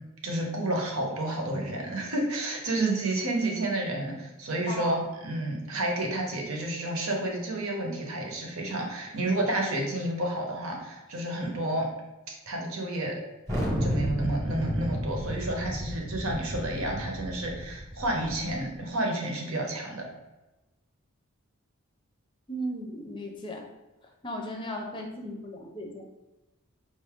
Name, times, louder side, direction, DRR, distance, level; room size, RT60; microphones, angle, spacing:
voice 1, 0.2-4.9 5.2-11.9 12.5-13.2 13.8-20.1, right 1 dB, 75° right, 1 dB, 1.0 m, -30 dB
voice 2, 4.7-5.0 13.6-13.7 22.5-23.7 24.2-26.0, equal, 20° left, 1 dB, 0.5 m, -36 dB
Thunder, 13.5-18.6, equal, 20° right, 1.0 m, -32 dB
4.7 x 2.6 x 3.6 m, 1.0 s
head